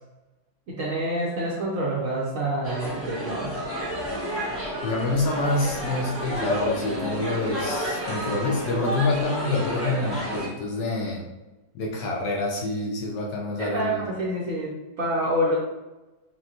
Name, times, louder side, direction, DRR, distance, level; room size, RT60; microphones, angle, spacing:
voice 1, 0.7-3.6 13.6-15.6, right 1 dB, 60° right, -6 dB, 0.9 m, -27 dB
sound 1, 2.6-10.5, equal, 15° left, 0.4 m, -30 dB
voice 2, 4.8-11.3 11.7-14.0, left 2 dB, 70° left, 0 dB, 1.3 m, -27 dB
6.2 x 2.2 x 2.9 m, 1.1 s
omnidirectional pair, 2.2 m